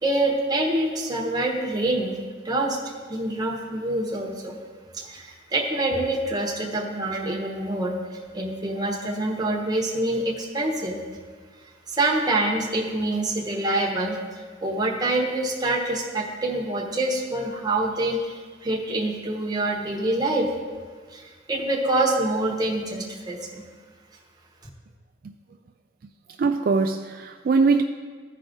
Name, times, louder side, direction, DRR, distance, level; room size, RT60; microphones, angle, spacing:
voice 1, 0.0-2.1 2.4-2.8 3.1-4.6 4.9-8.0 8.3-11.0 11.9-20.5 21.1-23.6, right 2 dB, 25° right, -1 dB, 1.1 m, -26 dB
voice 2, 26.4-27.8, right 4 dB, 55° right, 5 dB, 0.3 m, -21 dB
14.5 x 4.9 x 3.8 m, 1.5 s
head